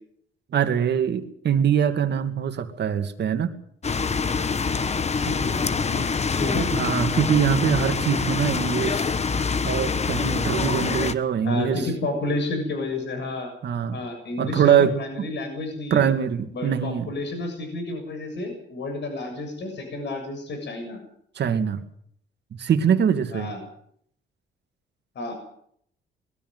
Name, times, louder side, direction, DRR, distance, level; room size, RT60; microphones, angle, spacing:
voice 1, 0.5-3.5 6.7-9.1 9.6-11.8 13.6-14.0 14.4-15.3 15.9-17.1 21.4-21.8 22.6-23.5, right 8 dB, 60° right, 7 dB, 2.4 m, -23 dB
sound 1, 3.8-11.1, left 5 dB, 35° left, 1.3 m, -25 dB
voice 2, 5.1-6.1 6.4-6.9 11.4-13.5 13.9-16.1 16.5-21.0 23.3-23.6 25.2-25.3, left 2 dB, 60° left, 5 dB, 7.1 m, -31 dB
21.5 x 13.5 x 9.4 m, 0.68 s
cardioid pair, 90°, 20 cm